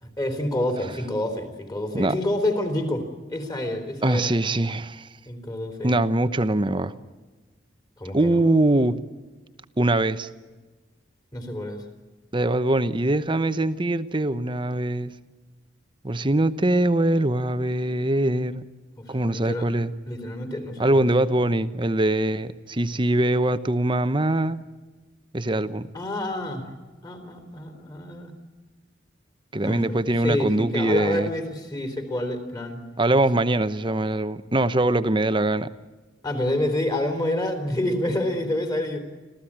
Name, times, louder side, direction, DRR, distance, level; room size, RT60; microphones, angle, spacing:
voice 1, 0.0-4.3 5.3-5.9 8.0-8.4 11.3-11.8 19.0-19.7 20.1-21.1 25.9-26.7 27.0-28.4 29.6-32.8 36.2-39.0, left 1 dB, 20° left, 6 dB, 3.7 m, -28 dB
voice 2, 4.0-5.1 5.8-6.9 8.1-9.0 9.8-10.3 12.3-15.1 16.0-18.6 19.1-19.9 20.8-24.6 25.3-25.9 29.5-31.3 33.0-35.7, right 1 dB, 25° right, 12 dB, 0.9 m, -22 dB
26.5 x 15.5 x 8.8 m, 1.3 s
head